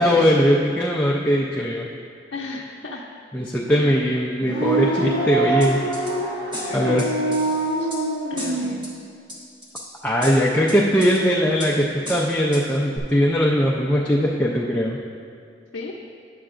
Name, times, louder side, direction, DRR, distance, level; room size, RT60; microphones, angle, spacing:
voice 1, 0.0-1.9 3.3-5.8 6.7-7.1 10.0-15.0, equal, 10° left, -3 dB, 0.4 m, -20 dB
voice 2, 2.3-3.1 3.7-4.1 5.5-5.8 6.6-7.4 7.8-7.9 8.3-9.0 15.7-16.0, left 2 dB, 75° left, -3 dB, 0.6 m, -36 dB
sound 1, 4.4-8.8, right 2 dB, 75° right, 1.8 m, -25 dB
sound 2, 5.6-6.1 6.5-8.0 8.4-8.9 9.3-9.9 10.2-11.2 11.6-11.7 12.1-12.6 13.0-13.1, left 1 dB, 25° right, 1.2 m, -35 dB
10.0 x 7.5 x 2.5 m, 2.3 s
head